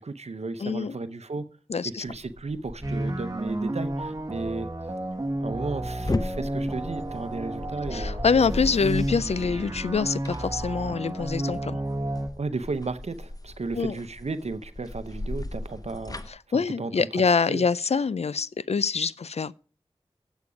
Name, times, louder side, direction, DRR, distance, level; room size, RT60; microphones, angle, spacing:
voice 1, 0.0-1.5 1.8-4.7 5.4-8.1 12.4-16.2 16.5-17.1 17.5-17.6, right 3 dB, 75° right, 0.7 m, -34 dB
voice 2, 0.6-1.0 1.7-2.0 7.9-11.8 13.7-13.9 16.5-19.5, left 5 dB, 70° left, 0.4 m, -25 dB
sound 1, 2.1-16.3, left 2 dB, 35° left, 0.7 m, -37 dB
sound 2, 2.8-12.3, right 1 dB, 35° right, 1.2 m, -32 dB
8.4 x 8.1 x 4.9 m
wide cardioid pair, 45°, 11 cm